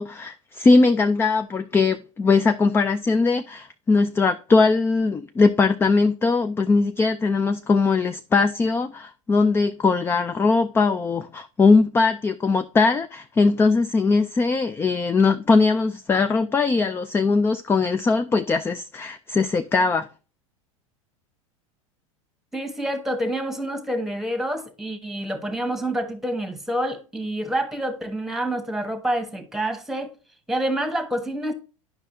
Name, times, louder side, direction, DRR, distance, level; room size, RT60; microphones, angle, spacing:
voice 1, 0.0-20.1, left 4 dB, 15° left, 0.3 m, -20 dB
voice 2, 22.5-30.1 30.5-31.5, right 1 dB, ahead, 1.2 m, -27 dB
9.7 x 5.4 x 2.7 m
hypercardioid pair, 90°, 18 cm